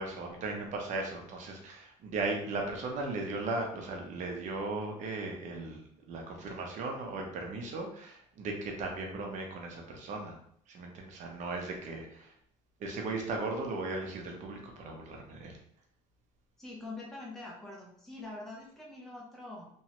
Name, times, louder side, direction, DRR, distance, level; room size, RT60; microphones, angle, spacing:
voice 1, 0.0-5.8 6.1-10.4 10.7-12.3 12.8-15.6, right 3 dB, 45° right, 1 dB, 0.7 m, -37 dB
voice 2, 16.6-19.7, left 2 dB, ahead, -4 dB, 0.7 m, -44 dB
3.0 x 2.2 x 2.9 m, 0.66 s
cardioid pair, 135°, 17 cm